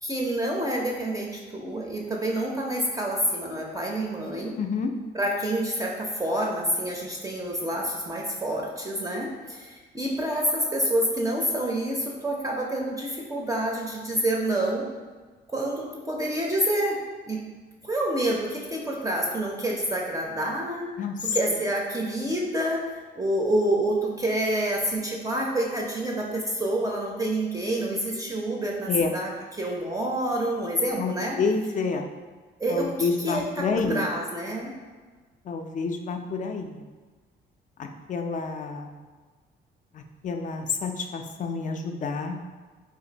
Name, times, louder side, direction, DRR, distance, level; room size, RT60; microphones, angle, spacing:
voice 1, 0.0-4.6 5.1-14.9 15.5-17.0 17.2-17.4 17.8-20.9 21.2-31.4 32.6-34.7, right 1 dB, 15° right, -2 dB, 0.5 m, -28 dB
voice 2, 4.6-4.9 21.0-21.4 28.9-29.2 31.0-32.1 32.7-34.1 35.5-36.8 37.8-38.9 39.9-42.4, left 4 dB, 40° left, 5 dB, 0.4 m, -29 dB
2.5 x 2.5 x 3.9 m, 1.4 s
cardioid pair, 90°, 20 cm